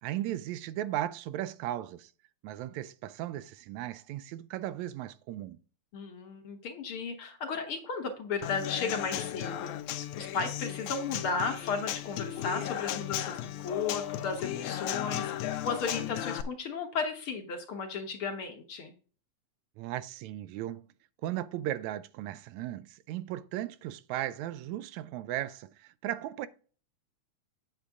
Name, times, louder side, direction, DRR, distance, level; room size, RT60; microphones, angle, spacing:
voice 1, 0.0-2.1 2.4-5.6 19.8-20.9 21.2-26.5, right 13 dB, 80° right, 1.9 m, -36 dB
voice 2, 5.9-9.8 10.2-15.3 15.6-18.9, left 5 dB, 55° left, 1.7 m, -34 dB
Human voice / Acoustic guitar / Drum, 8.4-16.4, left 12 dB, 85° left, 2.2 m, -35 dB
8.1 x 8.1 x 3.6 m
omnidirectional pair, 3.3 m